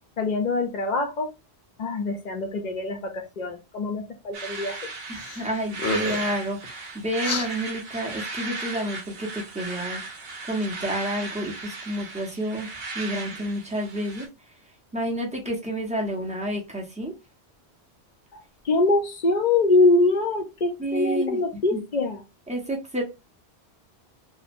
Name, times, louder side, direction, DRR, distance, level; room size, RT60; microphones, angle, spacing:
voice 1, 0.2-1.3 1.8-4.8 18.6-22.2, left 2 dB, 50° left, 4 dB, 0.6 m, -24 dB
sound 1, 4.3-14.3, right 3 dB, 65° right, 0.8 m, -36 dB
voice 2, 5.1-10.2 10.5-14.3 14.9-17.1 20.8-21.4 21.7-21.8 22.5-23.0, right 1 dB, 10° right, -2 dB, 0.6 m, -30 dB
sound 2, 5.2-5.4 5.7-6.4 7.2-7.5, left 3 dB, 80° left, 0.9 m, -29 dB
2.9 x 2.0 x 2.5 m, 0.26 s
omnidirectional pair, 1.1 m